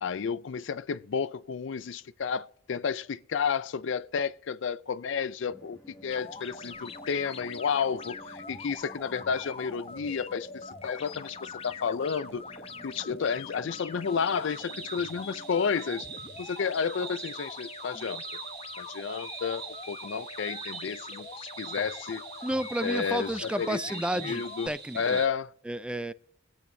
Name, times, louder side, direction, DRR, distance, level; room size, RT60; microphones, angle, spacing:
voice 1, 0.0-12.4 12.8-16.1 16.4-18.2 18.8-21.3 21.6-22.3 22.8-25.5, left 6 dB, 70° left, 0.4 m, -31 dB
sound 1, 5.5-17.5, equal, 10° left, 1.4 m, -53 dB
sound 2, 6.1-24.7, left 4 dB, 30° left, 0.9 m, -43 dB
sound 3, 14.1-25.3, right 6 dB, 55° right, 2.1 m, -43 dB
voice 2, 22.4-25.2 25.6-26.1, right 1 dB, 5° right, 0.4 m, -32 dB
23.5 x 8.7 x 2.7 m
head